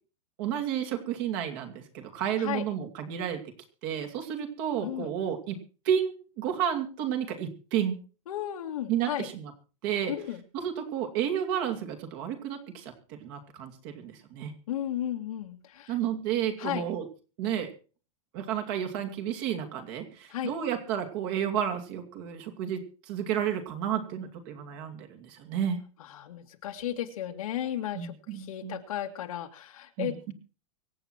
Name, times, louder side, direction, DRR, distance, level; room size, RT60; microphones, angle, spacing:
voice 1, 0.4-3.4 3.8-5.6 5.8-8.0 8.9-9.5 9.8-10.1 10.5-14.5 15.9-17.1 17.4-17.7 18.3-22.8 23.1-25.8 27.9-28.8 30.0-30.3, right 9 dB, 40° right, 5 dB, 2.6 m, -31 dB
voice 2, 4.8-5.1 8.3-9.3 10.1-10.4 14.7-16.0 16.6-16.8 20.3-20.5 26.1-30.3, left 11 dB, 80° left, 3 dB, 2.3 m, -34 dB
24.5 x 8.3 x 4.5 m, 0.35 s
supercardioid pair, 180°, 18 cm